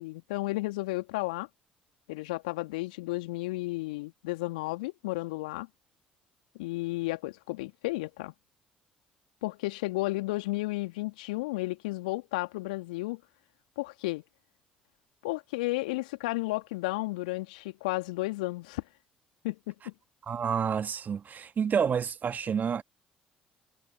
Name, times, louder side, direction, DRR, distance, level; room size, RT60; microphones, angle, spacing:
voice 1, 0.0-1.5 2.1-5.7 6.6-8.3 9.4-13.2 13.8-14.2 15.2-18.8 19.4-19.9, left 21 dB, 75° left, 2.6 m, -33 dB
voice 2, 20.3-22.8, right 7 dB, 40° right, 1.7 m, -29 dB
figure-of-eight pair, 50°, 4 cm